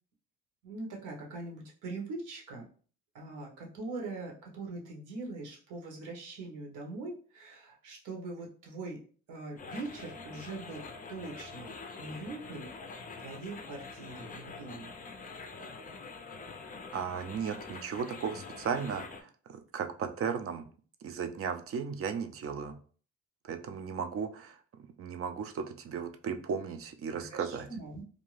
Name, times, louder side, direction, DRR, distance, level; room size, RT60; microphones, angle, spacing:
voice 1, 0.6-2.7 3.1-9.0 9.3-12.7 13.2-14.9 27.1-28.0, right 3 dB, 85° right, -1 dB, 1.0 m, -42 dB
sound 1, 9.6-19.2, left 4 dB, 30° left, 0.4 m, -45 dB
voice 2, 16.9-20.6 21.0-22.8 23.4-24.6 25.0-27.7, right 6 dB, 50° right, 7 dB, 0.5 m, -35 dB
2.6 x 2.2 x 3.1 m, 0.41 s
cardioid pair, 90°, 30 cm